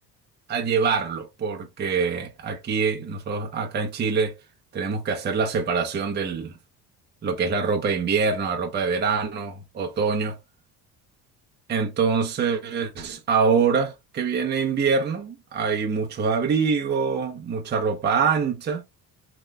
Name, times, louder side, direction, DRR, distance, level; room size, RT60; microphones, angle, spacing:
voice 1, 0.5-4.3 4.7-6.5 7.2-10.4 11.7-18.8, right 5 dB, 25° right, 0.8 m, -24 dB
3.3 x 3.0 x 2.2 m
cardioid pair, 105°, 38 cm